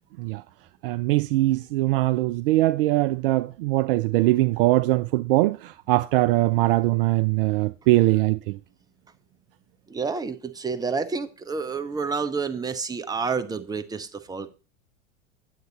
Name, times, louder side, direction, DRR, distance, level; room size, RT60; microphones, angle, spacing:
voice 1, 0.8-8.6, right 18 dB, 45° right, 0.4 m, -22 dB
voice 2, 9.9-14.5, right 5 dB, 10° right, 0.8 m, -29 dB
9.5 x 8.0 x 4.0 m
figure-of-eight pair, 90°, 38 cm